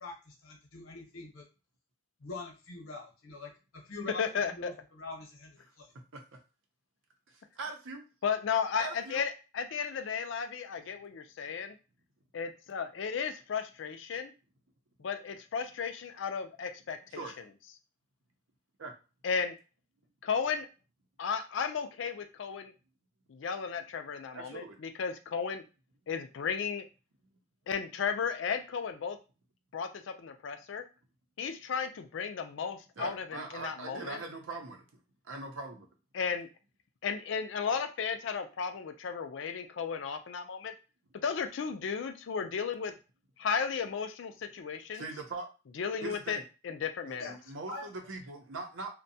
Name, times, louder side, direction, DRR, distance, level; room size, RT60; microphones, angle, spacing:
voice 1, 0.0-1.4 2.2-3.5 3.9-5.9 47.2-47.3 47.7-47.9, left 3 dB, 85° left, 1 dB, 0.9 m, -44 dB
voice 2, 4.2-4.7 8.2-11.8 12.3-14.3 15.0-17.2 19.2-19.5 20.2-20.7 21.2-22.7 23.3-25.6 26.1-26.8 27.7-29.2 29.7-30.8 31.4-34.2 36.1-36.5 37.0-40.7 41.2-42.9 43.4-45.0 45.8-46.4 46.6-47.3, left 6 dB, 60° left, 8 dB, 0.4 m, -34 dB
voice 3, 7.3-8.0 8.8-9.2 17.1-17.3 18.8-18.9 24.3-24.8 33.0-35.9 44.9-45.5 46.0-46.4 47.0-48.9, right 3 dB, 70° right, 3 dB, 0.6 m, -41 dB
2.6 x 2.2 x 2.7 m, 0.32 s
head